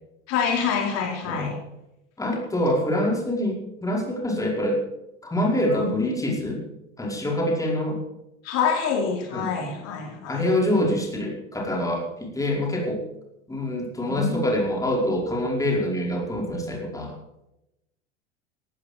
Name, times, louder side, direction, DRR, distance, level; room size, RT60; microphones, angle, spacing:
voice 1, 0.3-1.6 5.7-5.9 8.4-10.5 14.1-14.4, left 6 dB, 45° left, 1 dB, 4.6 m, -26 dB
voice 2, 1.2-1.6 2.2-4.8 5.2-6.6 7.0-8.0 9.3-9.5 10.3-13.0 13.5-17.2, left 1 dB, 10° left, 0 dB, 5.0 m, -25 dB
18.0 x 15.0 x 5.1 m, 0.88 s
figure-of-eight pair, 85°, 36 cm